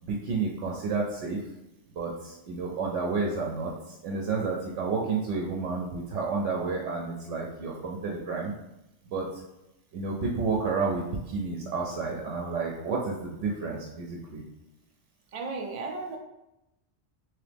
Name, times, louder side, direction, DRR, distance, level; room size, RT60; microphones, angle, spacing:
voice 1, 0.0-1.4 2.0-8.5 9.1-9.4 9.9-14.4, right 4 dB, 90° right, -2 dB, 0.9 m, -30 dB
voice 2, 15.3-16.2, right 3 dB, 70° right, 2 dB, 0.3 m, -34 dB
3.0 x 2.9 x 3.4 m, 0.92 s
omnidirectional pair, 1.2 m